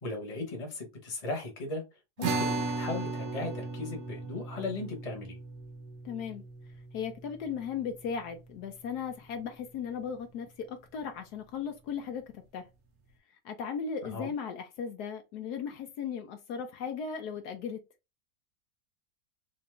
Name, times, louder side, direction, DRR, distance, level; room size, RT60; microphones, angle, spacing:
voice 1, 0.0-1.8 2.2-5.4 14.0-14.3, left 2 dB, 25° left, 1.1 m, -37 dB
sound 1, 2.2-8.8, right 3 dB, 75° right, 1.4 m, -37 dB
voice 2, 6.0-6.4 6.9-12.6 13.4-17.8, left 7 dB, 75° left, 1.2 m, -37 dB
3.9 x 2.7 x 3.2 m
omnidirectional pair, 1.7 m